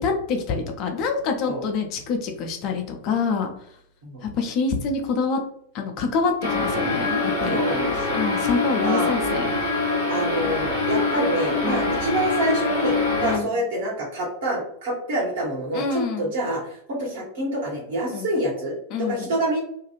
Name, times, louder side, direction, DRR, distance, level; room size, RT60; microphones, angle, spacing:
voice 1, 0.0-3.5 4.2-5.4 5.7-7.6 8.1-9.5 11.6-11.9 13.2-13.5 15.7-16.3 18.1-18.3 18.9-19.3, left 5 dB, 40° left, 3 dB, 0.5 m, -26 dB
sound 1, 6.4-13.4, left 3 dB, 85° right, 0.8 m, -24 dB
voice 2, 7.5-8.2 8.8-9.1 10.1-19.6, right 1 dB, 55° right, -3 dB, 1.3 m, -27 dB
2.5 x 2.3 x 3.0 m, 0.68 s
figure-of-eight pair, 90°, 0 cm